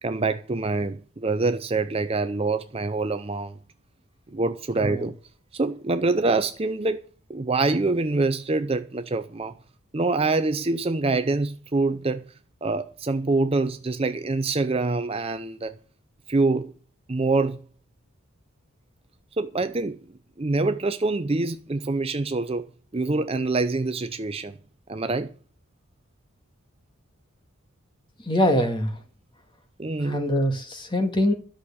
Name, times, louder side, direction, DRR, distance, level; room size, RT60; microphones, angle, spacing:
voice 1, 0.0-3.6 4.3-5.1 5.5-7.0 7.3-9.6 9.9-12.2 12.6-15.8 16.3-16.7 17.1-17.6 19.4-20.0 20.4-22.7 22.9-24.5 24.9-25.3 29.8-30.2, right 3 dB, 25° right, 0.5 m, -25 dB
voice 2, 28.2-29.0 30.0-31.3, left 1 dB, 20° left, 1.8 m, -23 dB
13.0 x 6.4 x 8.4 m
head